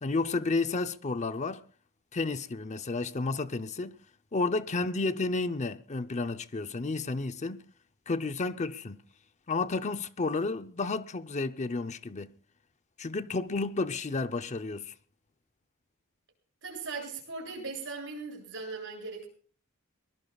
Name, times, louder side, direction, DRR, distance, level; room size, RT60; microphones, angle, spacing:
voice 1, 0.0-1.6 2.1-4.0 4.3-7.6 8.1-9.0 9.5-12.3 13.0-14.9, left 3 dB, 30° left, 0.7 m, -31 dB
voice 2, 16.6-19.3, right 4 dB, 60° right, 7.6 m, -39 dB
23.0 x 21.0 x 2.4 m
head